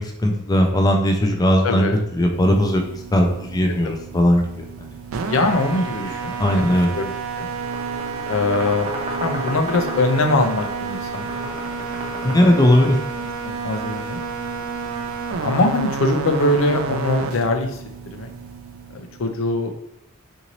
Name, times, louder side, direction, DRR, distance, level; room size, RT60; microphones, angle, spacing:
voice 1, 0.0-1.9 2.1-4.9 6.4-6.9 12.2-13.0, equal, 20° left, 3 dB, 0.4 m, -18 dB
voice 2, 1.6-1.9 3.8-3.9 5.3-7.5 8.3-8.9 9.2-11.3 12.2-12.4 13.4-14.2 15.4-17.8 18.1-18.3 18.9-19.7, left 2 dB, 75° left, 6 dB, 0.5 m, -22 dB
sound 1, 2.2-19.4, right 5 dB, 80° right, 0.4 m, -30 dB
sound 2, 7.5-13.3, equal, 30° right, 0.6 m, -34 dB
3.8 x 2.7 x 3.0 m, 0.76 s
head